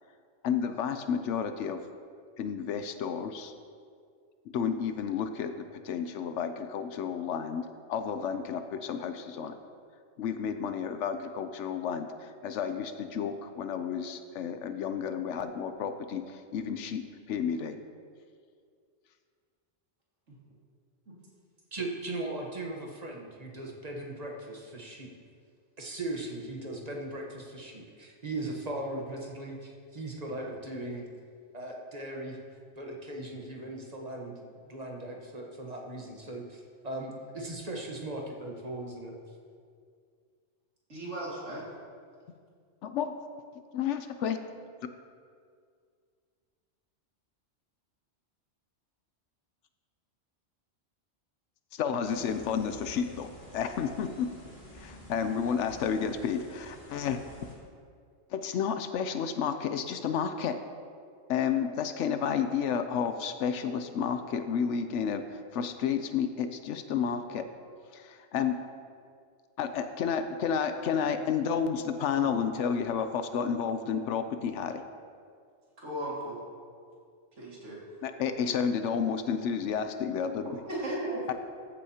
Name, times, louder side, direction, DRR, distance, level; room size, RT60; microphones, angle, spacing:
voice 1, 0.4-1.8 2.4-3.5 4.5-9.6 10.2-17.0 17.3-17.8 42.8-43.1 43.7-44.4 51.7-54.3 54.7-57.2 58.3-60.5 61.3-67.4 67.9-68.6 69.6-74.8 78.0-80.6 81.3-81.4, left 7 dB, 80° left, 9 dB, 0.9 m, -31 dB
voice 2, 21.7-25.1 25.8-31.1 31.5-32.4 32.8-34.4 34.7-39.2, right 2 dB, 35° right, 0 dB, 1.2 m, -38 dB
voice 3, 40.9-41.7 75.8-76.4 77.4-77.8 80.6-81.2, right 1 dB, 85° right, -6 dB, 2.6 m, -36 dB
sound 1, 52.0-57.5, equal, 45° left, 2.4 m, -50 dB
14.5 x 8.4 x 2.8 m, 2.1 s
omnidirectional pair, 1.2 m